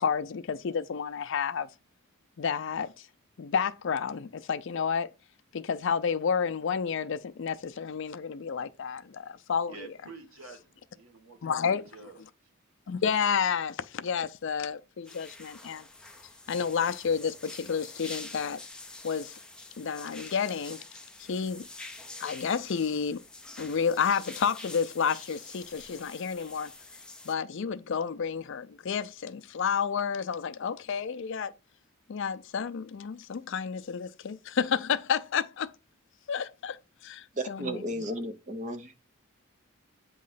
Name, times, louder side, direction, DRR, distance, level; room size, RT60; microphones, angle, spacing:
voice 1, 0.0-1.7 2.4-2.9 3.4-5.1 5.5-9.9 11.4-11.8 12.9-15.9 16.5-18.6 19.0-19.3 19.8-20.8 21.3-21.7 22.2-23.2 23.6-26.7 27.3-31.5 32.1-35.7 36.3-36.8 37.0-37.8, left 6 dB, 60° left, 0.4 m, -30 dB
voice 2, 9.7-12.2, right 4 dB, 75° right, 1.3 m, -49 dB
sound 1, 15.1-27.3, left 2 dB, 5° left, 0.5 m, -46 dB
voice 3, 37.4-38.9, right 1 dB, 35° right, 0.7 m, -34 dB
8.4 x 3.1 x 3.9 m
head